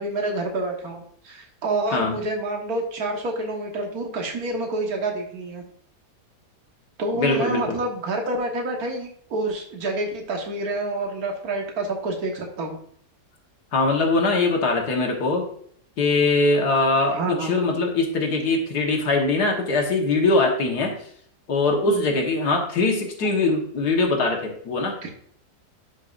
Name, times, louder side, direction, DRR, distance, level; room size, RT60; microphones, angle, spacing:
voice 1, 0.0-5.6 7.0-12.8 17.1-17.5 25.0-25.1, right 2 dB, 60° right, 1 dB, 1.8 m, -28 dB
voice 2, 7.1-7.8 13.7-15.5 16.0-21.0 21.5-25.0, left 3 dB, 65° left, 2 dB, 1.8 m, -22 dB
11.0 x 5.5 x 2.5 m, 0.63 s
omnidirectional pair, 1.8 m